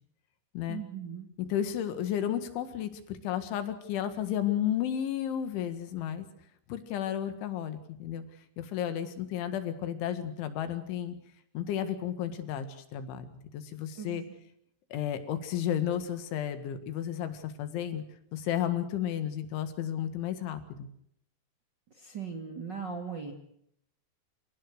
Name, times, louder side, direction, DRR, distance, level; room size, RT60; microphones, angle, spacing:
voice 1, 0.7-1.3 14.0-14.2 21.9-23.3, right 6 dB, 30° right, 2 dB, 2.2 m, -38 dB
voice 2, 1.5-6.3 6.7-8.2 8.6-11.2 11.5-13.3 13.5-14.2 14.9-18.0 18.3-20.9, left 10 dB, 75° left, 10 dB, 4.2 m, -32 dB
28.5 x 17.0 x 6.4 m, 0.71 s
omnidirectional pair, 5.5 m